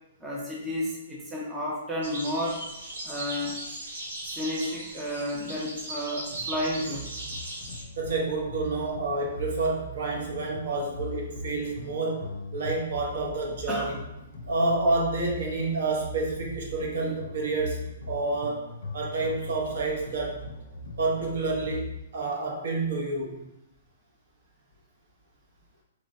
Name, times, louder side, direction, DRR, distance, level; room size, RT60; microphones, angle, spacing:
voice 1, 0.2-2.6 3.0-3.5 4.3-7.1 13.7-14.0, left 1 dB, 5° right, -5 dB, 0.4 m, -31 dB
sound 1, 2.0-7.8, right 1 dB, 85° right, 1.3 m, -38 dB
sound 2, 6.3-22.0, left 2 dB, 75° left, 0.5 m, -40 dB
voice 2, 8.0-12.2 12.5-14.0 14.5-18.7 18.9-20.4 21.0-21.9 22.1-23.4, right 3 dB, 60° right, -1 dB, 0.9 m, -29 dB
3.2 x 3.0 x 2.7 m, 0.88 s
hypercardioid pair, 170°, 0 cm